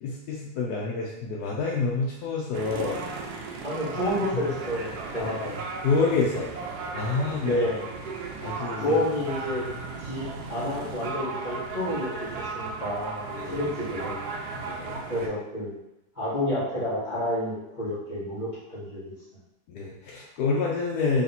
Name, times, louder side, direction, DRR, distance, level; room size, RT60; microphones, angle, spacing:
voice 1, 0.0-3.0 4.0-4.1 5.1-6.5 6.9-7.6 8.4-9.0 13.3-13.7 14.5-15.0 19.7-21.2, left 4 dB, 75° left, -3 dB, 1.1 m, -28 dB
sound 1, 2.5-15.3, right 4 dB, 75° right, 1.1 m, -36 dB
voice 2, 3.6-5.3 7.4-7.8 8.8-9.7 10.0-14.2 15.1-15.7 16.1-19.0, left 1 dB, 30° left, -11 dB, 1.1 m, -30 dB
3.3 x 2.8 x 4.0 m, 0.89 s
omnidirectional pair, 1.7 m